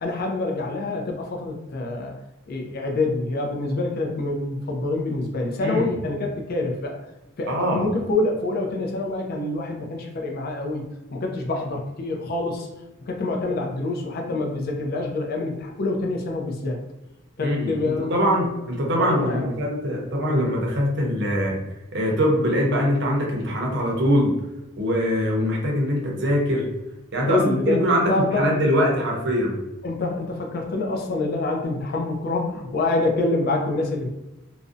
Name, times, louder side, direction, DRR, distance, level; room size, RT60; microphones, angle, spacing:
voice 1, 0.0-2.1 2.5-7.0 7.4-10.8 11.1-12.7 13.1-16.8 17.4-18.5 19.0-19.5 27.2-27.8 28.1-28.4 29.8-34.1, left 2 dB, 45° left, 1 dB, 0.3 m, -26 dB
voice 2, 7.5-7.9 17.4-21.6 21.9-24.3 24.8-26.7 27.1-29.6, equal, 50° right, -1 dB, 0.6 m, -23 dB
2.4 x 2.0 x 2.5 m, 0.98 s
head